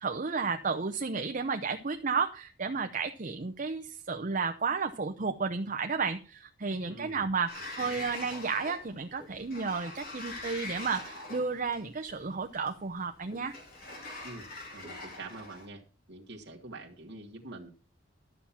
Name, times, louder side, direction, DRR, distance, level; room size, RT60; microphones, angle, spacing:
voice 1, 0.0-13.5, right 5 dB, 40° right, 6 dB, 0.7 m, -32 dB
voice 2, 6.9-7.2 7.8-8.0 14.2-14.4 14.7-15.8 16.1-17.7, right 2 dB, 60° right, -3 dB, 1.6 m, -45 dB
Sliding door, 7.5-15.7, left 2 dB, 50° left, 3.4 m, -44 dB
12.0 x 7.2 x 5.7 m, 0.36 s
head